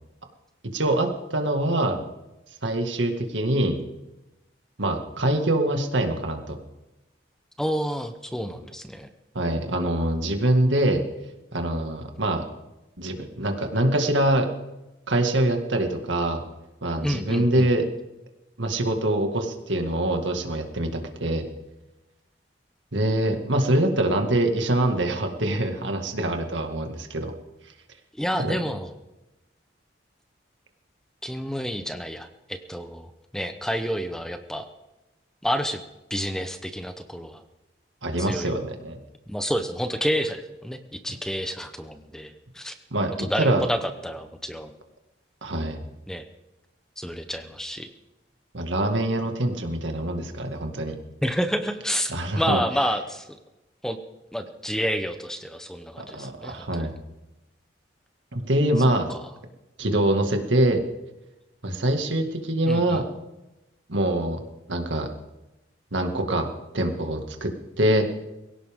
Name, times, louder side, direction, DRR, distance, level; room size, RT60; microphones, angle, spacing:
voice 1, 0.7-2.0 2.6-3.8 4.8-6.6 9.3-11.0 11.5-12.4 13.0-14.5 15.1-16.4 16.8-17.9 18.6-21.5 22.9-27.3 28.4-28.6 38.0-39.0 42.9-43.6 45.4-45.8 48.5-51.0 52.1-52.6 56.0-57.0 58.3-59.1 59.8-60.8 61.6-63.0 63.9-64.4 64.7-65.1 65.9-66.5 66.7-68.1, right 1 dB, 90° right, 4 dB, 2.1 m, -24 dB
voice 2, 7.6-9.1 17.0-17.7 28.2-28.9 31.2-34.7 35.4-35.8 36.1-37.4 38.2-38.5 39.3-42.7 43.2-44.7 46.1-46.3 47.0-47.9 51.2-53.3 53.8-54.0 54.3-56.9 59.1-59.2 62.7-63.0, equal, 5° left, 8 dB, 0.9 m, -29 dB
22.5 x 16.5 x 3.7 m, 0.98 s
head